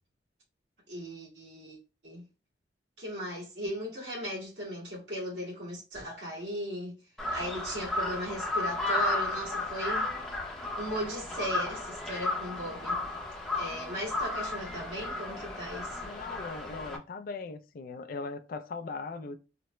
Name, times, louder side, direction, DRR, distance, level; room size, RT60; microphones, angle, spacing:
voice 1, 0.9-1.8 2.0-2.2 3.0-7.0 7.3-10.0 10.7-13.0 13.5-16.1, equal, 80° right, 1.7 m, -37 dB
Crow, 7.2-17.0, left 2 dB, 5° left, 0.6 m, -33 dB
voice 2, 16.0-19.4, left 4 dB, 50° left, 0.3 m, -39 dB
3.2 x 2.0 x 3.0 m
head